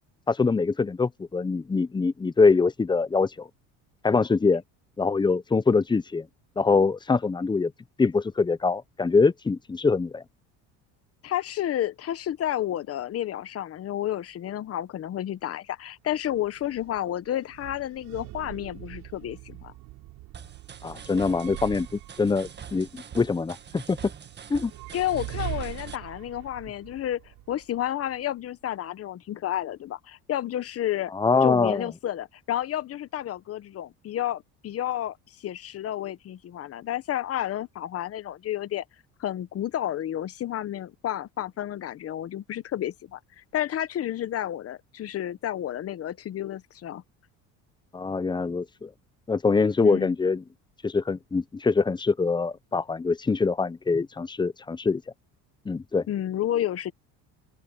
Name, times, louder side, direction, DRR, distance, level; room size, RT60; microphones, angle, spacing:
voice 1, 0.3-3.5 4.0-4.6 5.0-6.3 6.6-7.7 8.0-10.2 20.8-24.0 24.5-24.7 31.1-31.9 47.9-48.9 49.3-50.4 50.8-55.0 55.7-56.1, left 4 dB, 15° left, 0.8 m, -24 dB
voice 2, 11.2-19.7 24.9-27.2 27.5-31.1 31.4-38.8 39.2-47.0 49.8-50.1 56.1-56.9, left 12 dB, 40° left, 1.0 m, -31 dB
sound 1, 16.1-28.2, right 18 dB, 75° right, 4.5 m, -43 dB
sound 2, 20.3-26.0, right 7 dB, 30° right, 1.8 m, -45 dB
open air
cardioid pair, 125°, 35 cm